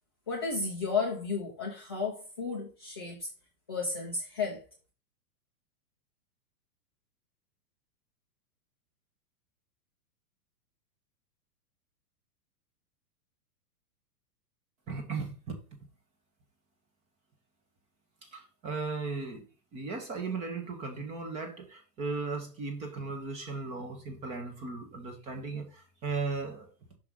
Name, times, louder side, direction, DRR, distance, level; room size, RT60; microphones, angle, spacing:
voice 1, 0.3-3.3 3.7-4.6, left 4 dB, 15° left, 0.4 m, -33 dB
voice 2, 14.9-15.5 18.2-19.4 19.7-26.7, right 4 dB, 15° right, 0.7 m, -36 dB
6.0 x 4.9 x 3.6 m
hypercardioid pair, 165°, 47 cm